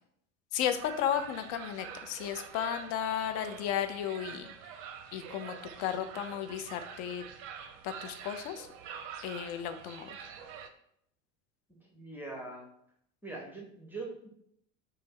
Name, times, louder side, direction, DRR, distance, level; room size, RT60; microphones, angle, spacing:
voice 1, 0.5-4.5 5.1-7.2 7.8-8.7 9.2-10.1, left 9 dB, 55° left, 9 dB, 0.5 m, -34 dB
sound 1, 0.7-10.7, right 7 dB, 50° right, 0.5 m, -46 dB
voice 2, 11.8-12.7 13.2-14.3, right 2 dB, 5° right, -2 dB, 0.6 m, -42 dB
2.5 x 2.2 x 3.6 m, 0.71 s
hypercardioid pair, 80°, 43 cm